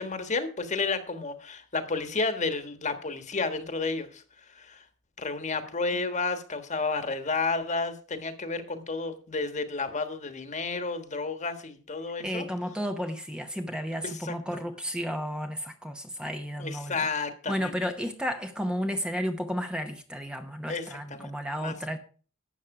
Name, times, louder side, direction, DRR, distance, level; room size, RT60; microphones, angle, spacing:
voice 1, 0.0-4.2 4.5-4.8 5.2-12.4 14.0-14.6 16.6-17.7 20.7-22.0, left 3 dB, 35° left, 1.4 m, -31 dB
voice 2, 12.2-17.0 17.5-22.0, equal, 5° right, 0.8 m, -32 dB
12.5 x 8.2 x 4.8 m
head